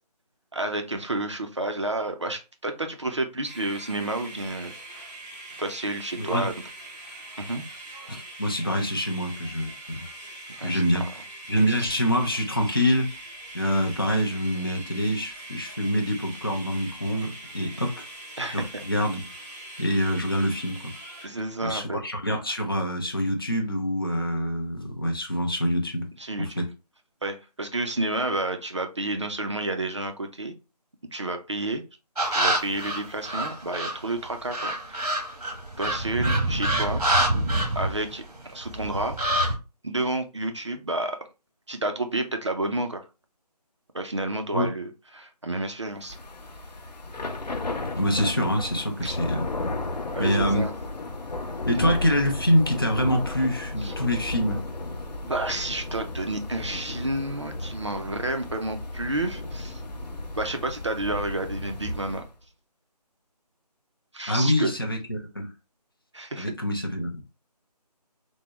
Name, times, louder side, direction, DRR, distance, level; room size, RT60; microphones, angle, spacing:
voice 1, 0.5-5.0 5.6-6.5 7.4-7.6 10.6-11.1 11.5-11.9 18.4-18.7 21.2-22.0 26.2-26.6 27.2-30.5 31.1-31.8 32.3-35.2 35.8-37.0 37.8-38.2 38.5-39.2 39.8-41.2 41.7-43.0 43.9-46.2 49.0-49.2 50.1-50.7 51.7-52.0 53.8-53.9 55.3-59.8 60.3-62.2 64.1-64.7 66.1-66.5, right 2 dB, 45° right, 0.4 m, -30 dB
sound 1, 3.4-21.3, right 1 dB, 15° right, 1.4 m, -42 dB
voice 2, 6.2-6.5 8.1-10.1 10.6-11.1 11.5-13.1 13.5-18.1 18.5-19.2 19.8-20.8 21.6-26.1 26.4-26.7 44.5-44.7 47.9-49.5 50.2-50.7 51.7-54.6 64.3-65.5 66.4-67.2, equal, 35° left, 0.5 m, -25 dB
sound 2, 32.2-34.0 34.5-38.4 38.6-39.5, right 1 dB, 60° right, 1.1 m, -26 dB
Thunder / Rain, 46.0-62.3, left 2 dB, 85° left, 0.7 m, -34 dB
3.5 x 2.0 x 2.8 m
figure-of-eight pair, 175°, 21 cm